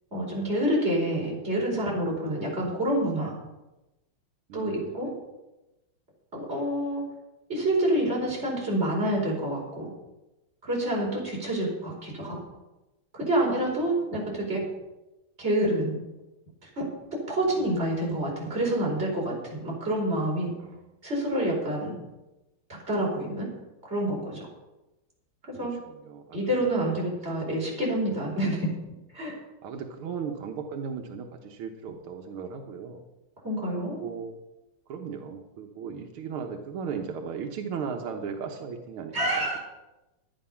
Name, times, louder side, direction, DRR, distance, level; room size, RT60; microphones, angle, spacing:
voice 1, 0.1-3.3 4.5-5.1 6.3-7.0 7.5-9.9 10.6-12.4 13.1-14.6 15.4-16.0 16.8-20.5 21.0-22.0 22.9-23.5 23.8-24.4 25.5-25.7 26.3-28.7 29.1-29.4 33.4-34.0 39.1-39.6, right 1 dB, 30° right, -3 dB, 5.1 m, -27 dB
voice 2, 4.5-5.1 11.0-11.2 17.4-17.6 20.6-20.8 25.6-26.4 26.9-27.0 27.5-27.6 29.6-33.0 33.7-34.4 34.9-39.6, right 6 dB, 90° right, 4 dB, 1.9 m, -37 dB
11.5 x 10.0 x 5.7 m, 0.99 s
omnidirectional pair, 2.3 m